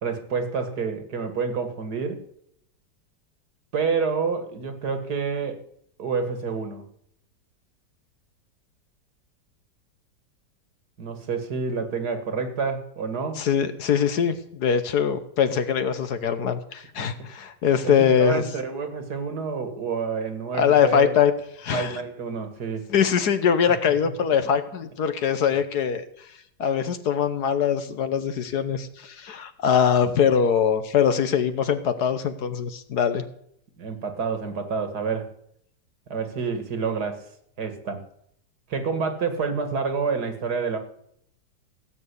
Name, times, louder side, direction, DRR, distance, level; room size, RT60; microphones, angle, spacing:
voice 1, 0.0-2.2 3.7-5.6 6.0-6.8 11.0-13.4 17.8-21.2 21.7-22.8 24.2-24.5 33.8-35.3 36.1-37.2 37.6-38.0 38.7-40.8, right 5 dB, 60° right, 8 dB, 2.2 m, -28 dB
voice 2, 13.4-18.4 20.6-21.3 21.6-22.0 22.9-26.0 26.6-33.2, left 7 dB, 65° left, 10 dB, 1.5 m, -22 dB
17.0 x 7.0 x 8.3 m, 0.69 s
omnidirectional pair, 1.9 m